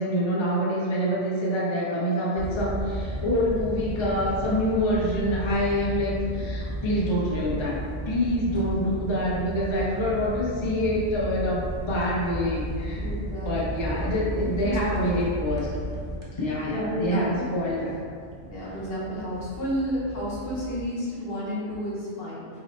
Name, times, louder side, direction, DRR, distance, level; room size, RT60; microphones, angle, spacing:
voice 1, 0.0-7.8 8.0-13.1 13.4-15.7 16.4-17.9 18.6-18.7, equal, 30° left, -6 dB, 0.5 m, -26 dB
sound 1, 2.4-20.9, right 1 dB, 35° right, 0.7 m, -34 dB
voice 2, 12.9-13.8 14.4-15.2 16.7-17.5 18.4-22.5, equal, 55° left, -6 dB, 1.0 m, -31 dB
3.1 x 2.9 x 4.1 m, 2.2 s
omnidirectional pair, 1.3 m